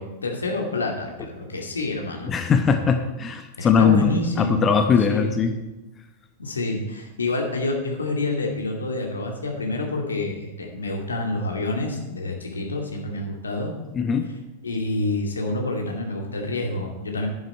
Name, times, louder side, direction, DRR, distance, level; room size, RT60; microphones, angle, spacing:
voice 1, 0.0-2.3 3.6-4.7 5.1-5.3 6.4-13.7 14.6-17.3, left 2 dB, 80° left, 1 dB, 2.4 m, -28 dB
voice 2, 2.3-5.5 13.9-14.3, left 6 dB, 25° left, 7 dB, 1.0 m, -20 dB
11.0 x 10.5 x 4.3 m, 1.0 s
figure-of-eight pair, 90°, 0 cm